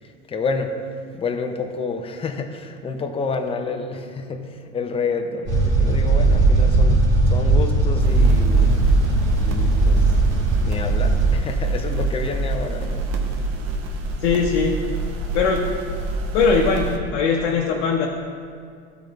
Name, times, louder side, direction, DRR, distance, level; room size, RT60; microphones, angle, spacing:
voice 1, 0.3-0.7 1.1-8.8 9.4-10.0 10.6-13.0, left 4 dB, 15° left, 5 dB, 0.6 m, -29 dB
sound 1, 5.5-11.3, right 2 dB, 30° right, 1.7 m, -18 dB
sound 2, 8.0-17.0, right 3 dB, 50° right, 1.0 m, -27 dB
voice 2, 14.2-14.8 15.3-15.6 16.3-18.1, left 5 dB, 70° left, -2 dB, 0.9 m, -20 dB
12.0 x 4.0 x 4.6 m, 2.3 s
supercardioid pair, 120°, 35 cm